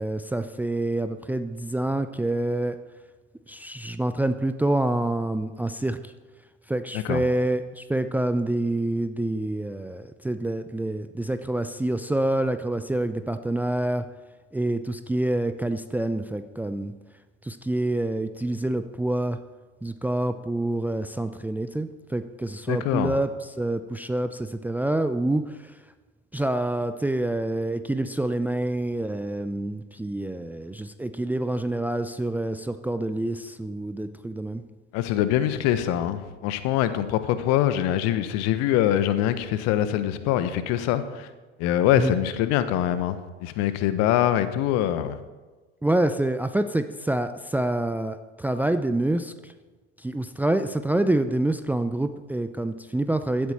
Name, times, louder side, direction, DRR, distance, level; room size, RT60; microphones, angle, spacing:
voice 1, 0.0-2.8 3.5-6.1 6.7-14.0 14.5-16.9 17.4-19.4 19.8-25.7 26.3-34.6 42.0-42.1 45.8-49.5 50.0-53.5, right 1 dB, 5° right, 10 dB, 0.6 m, -27 dB
voice 2, 22.7-23.1 34.9-41.3 41.6-45.2, left 11 dB, 50° left, 12 dB, 1.2 m, -24 dB
16.5 x 12.5 x 4.4 m, 1.3 s
figure-of-eight pair, 70°, 33 cm